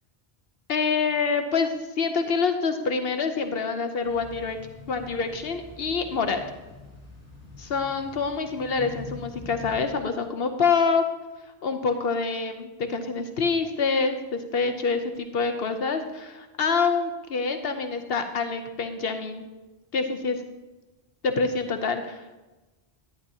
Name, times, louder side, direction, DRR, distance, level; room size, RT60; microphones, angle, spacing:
voice 1, 0.7-4.6 4.9-6.4 7.6-11.0 11.6-19.5 19.9-20.4 21.2-22.4, left 4 dB, 65° left, 7 dB, 0.9 m, -26 dB
sound 1, 4.0-9.9, left 3 dB, 30° right, 4.0 m, -44 dB
11.5 x 10.5 x 2.7 m, 1.1 s
omnidirectional pair, 1.1 m